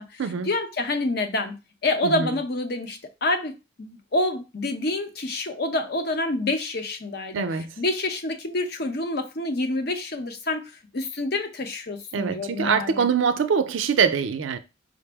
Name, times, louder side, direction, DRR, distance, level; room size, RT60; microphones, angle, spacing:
voice 1, 0.0-1.6 1.8-7.4 7.8-13.1, left 2 dB, 55° left, 0.7 m, -27 dB
voice 2, 7.3-7.7 12.1-14.6, right 6 dB, 90° right, 0.4 m, -23 dB
5.0 x 2.0 x 3.4 m
head